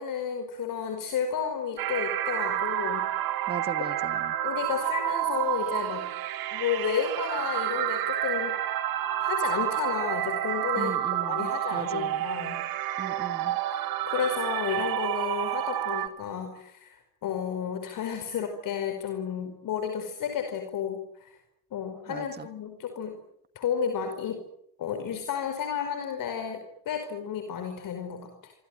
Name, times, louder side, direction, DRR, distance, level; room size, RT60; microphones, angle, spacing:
voice 1, 0.0-3.0 4.4-6.1 6.5-8.6 9.2-10.9 11.2-12.6 13.7-21.4 21.7-23.2 23.6-24.4 24.8-28.5, left 7 dB, 45° left, 6 dB, 5.3 m, -32 dB
sound 1, 1.8-16.1, right 12 dB, 50° right, 3.6 m, -29 dB
voice 2, 3.5-4.4 10.8-12.3 13.0-13.6 22.1-22.5, right 6 dB, 20° right, 13 dB, 1.7 m, -38 dB
26.0 x 25.0 x 9.2 m, 0.75 s
hypercardioid pair, 75°, 46 cm